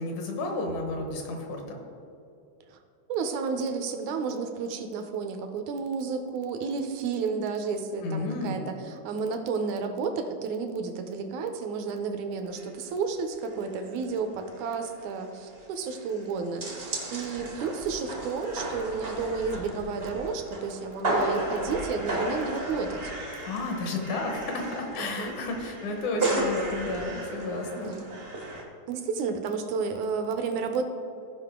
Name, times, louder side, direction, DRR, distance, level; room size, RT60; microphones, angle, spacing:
voice 1, 0.0-1.8 8.0-8.6 23.4-27.9, left 2 dB, 75° left, 2 dB, 2.6 m, -32 dB
voice 2, 3.1-23.1 25.0-25.4 27.8-28.1 28.9-30.8, right 5 dB, 80° right, 6 dB, 2.0 m, -31 dB
sound 1, 12.5-12.7 13.0-13.1 13.5-13.8 14.1-14.2 14.5-28.6, right 1 dB, 60° right, 0.6 m, -34 dB
15.0 x 5.2 x 3.7 m, 2.7 s
omnidirectional pair, 3.5 m